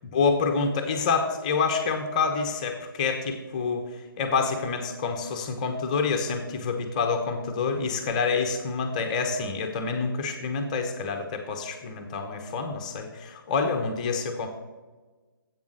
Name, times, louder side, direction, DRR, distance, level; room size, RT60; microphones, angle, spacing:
voice 1, 0.1-3.9 4.2-14.5, left 5 dB, 20° left, 4 dB, 0.7 m, -27 dB
8.0 x 7.1 x 6.2 m, 1.3 s
figure-of-eight pair, 145°, 12 cm